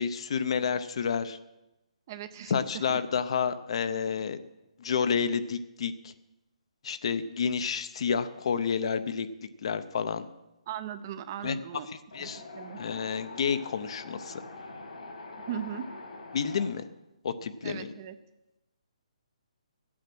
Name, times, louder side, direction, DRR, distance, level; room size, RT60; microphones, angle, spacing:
voice 1, 0.0-1.4 2.5-4.4 4.8-6.1 6.8-9.3 9.6-10.3 11.4-11.6 11.9-12.4 12.8-14.4 16.3-16.9 17.2-17.9, left 6 dB, 50° left, 12 dB, 0.7 m, -30 dB
voice 2, 2.1-3.0 10.7-11.9 12.2-12.8 15.5-15.9 17.6-18.2, right 9 dB, 30° right, 11 dB, 0.6 m, -38 dB
Wind, 12.1-16.7, left 2 dB, 85° left, 3.9 m, -44 dB
12.5 x 8.6 x 6.1 m, 0.98 s
hypercardioid pair, 165°, 4 cm